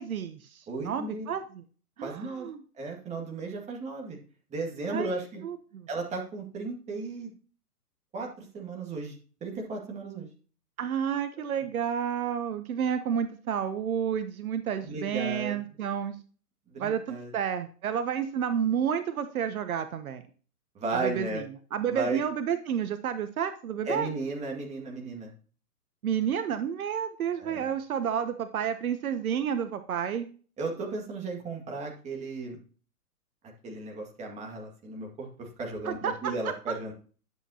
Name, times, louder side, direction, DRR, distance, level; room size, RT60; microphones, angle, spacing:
voice 1, 0.0-1.6 2.0-2.6 4.9-5.1 5.4-5.9 10.8-16.2 16.8-20.2 20.9-21.4 21.7-24.1 26.0-30.3 35.8-36.3, right 8 dB, 60° right, 10 dB, 1.0 m, -30 dB
voice 2, 0.7-1.3 2.0-2.5 2.8-4.2 4.5-5.4 5.9-7.3 8.1-10.3 11.6-11.7 14.8-15.6 16.7-17.3 20.7-21.4 21.9-22.2 23.9-25.3 27.4-27.7 30.6-32.6 33.6-36.9, right 3 dB, 15° right, 0 dB, 2.0 m, -35 dB
11.0 x 7.5 x 2.9 m, 0.39 s
hypercardioid pair, 140°, 47 cm